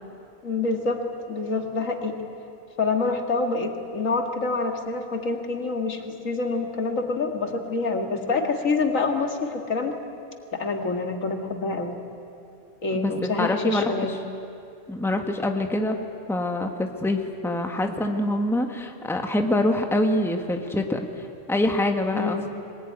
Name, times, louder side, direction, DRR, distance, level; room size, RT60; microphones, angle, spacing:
voice 1, 0.4-1.0 1.3-2.1 2.8-10.0 10.5-12.0 12.8-14.2 22.1-22.5, left 3 dB, 85° left, 4 dB, 2.3 m, -26 dB
voice 2, 12.9-13.9 14.9-16.0 16.3-21.1 21.5-22.5, left 1 dB, ahead, 4 dB, 1.4 m, -25 dB
23.5 x 19.5 x 9.6 m, 2.6 s
omnidirectional pair, 1.3 m